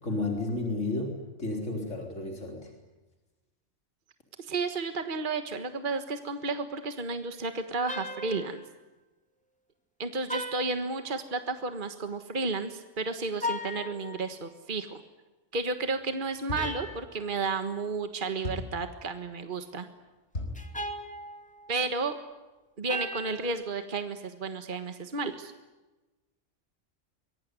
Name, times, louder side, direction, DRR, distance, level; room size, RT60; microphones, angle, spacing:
voice 1, 0.0-2.7, left 2 dB, 85° left, 2 dB, 4.1 m, -32 dB
voice 2, 4.4-8.6 10.0-15.0 15.5-19.9 21.7-22.2 22.8-25.5, right 3 dB, 45° right, 8 dB, 1.6 m, -32 dB
sound 1, 7.9-8.7 10.3-11.5 13.4-14.3 16.5-17.2 20.5-21.9 22.9-23.6, left 1 dB, 5° left, 2.5 m, -37 dB
sound 2, 16.5-16.9 18.4-18.9 20.3-20.7, left 1 dB, 70° left, 5.2 m, -36 dB
25.0 x 22.5 x 9.6 m, 1.1 s
omnidirectional pair, 1.2 m